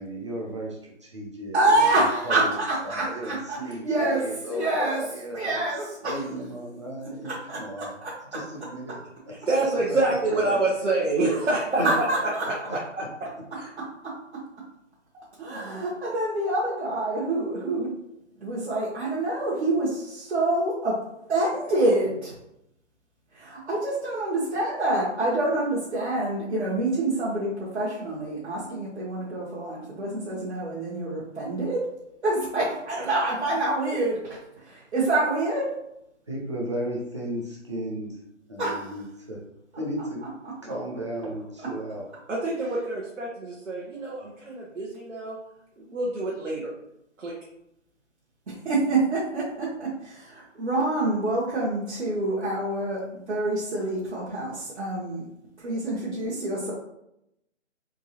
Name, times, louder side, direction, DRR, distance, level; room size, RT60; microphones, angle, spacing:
voice 1, 0.0-1.8 2.2-2.6 2.8-5.6 6.0-7.9 8.3-9.0 9.8-10.0 10.3-10.5 11.2-11.3 11.8-11.9 12.7-12.8 36.3-38.2 38.5-39.4 39.8-40.2 40.6-42.1, right 1 dB, 25° right, -2 dB, 0.6 m, -34 dB
voice 2, 1.5-5.1 5.3-6.3 7.0-8.4 11.8-12.5 13.8-14.4 15.4-17.9 18.4-21.0 21.3-22.4 23.3-31.9 32.2-35.7 38.6-39.0 41.6-41.7 48.5-55.3 55.6-56.7, right 2 dB, 60° right, -7 dB, 1.3 m, -27 dB
voice 3, 9.5-11.8 13.6-13.7 42.3-45.4 45.8-46.7 47.2-47.3, right 2 dB, 85° right, -4 dB, 1.2 m, -26 dB
3.7 x 3.6 x 2.9 m, 0.80 s
hypercardioid pair, 165°, 37 cm